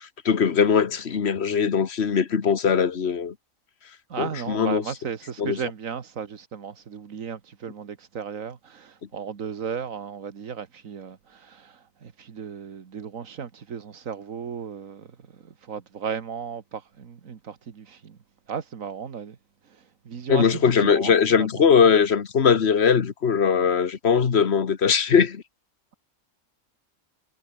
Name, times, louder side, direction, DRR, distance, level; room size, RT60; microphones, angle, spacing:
voice 1, 0.0-3.3 4.2-4.8 5.4-5.6 20.3-25.4, left 6 dB, 55° left, 1.5 m, -20 dB
voice 2, 4.1-15.1 15.4-18.2 18.5-19.4 20.1-21.6, right 6 dB, 85° right, 1.9 m, -35 dB
omnidirectional pair, 1.3 m